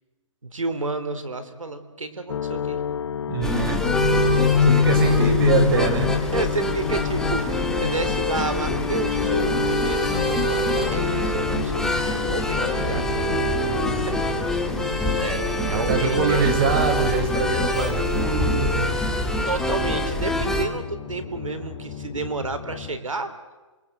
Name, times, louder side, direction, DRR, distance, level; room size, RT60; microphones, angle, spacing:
voice 1, 0.4-2.8 3.9-4.2 5.0-5.2 6.2-13.4 13.9-14.2 14.7-16.5 19.5-23.3, right 3 dB, 90° right, 10 dB, 3.9 m, -31 dB
sound 1, 2.3-20.8 21.1-22.1, left 7 dB, 65° left, 0.7 m, -27 dB
voice 2, 3.3-3.9 4.6-6.1 12.8-13.1 13.6-14.2 15.4-18.9, right 5 dB, 45° right, 7 dB, 5.0 m, -24 dB
sound 2, 3.4-20.6, equal, 5° left, 2.0 m, -25 dB
sound 3, 16.5-23.0, left 9 dB, 20° left, 2.3 m, -37 dB
27.0 x 22.5 x 8.0 m, 1.2 s
hypercardioid pair, 145°, 16 cm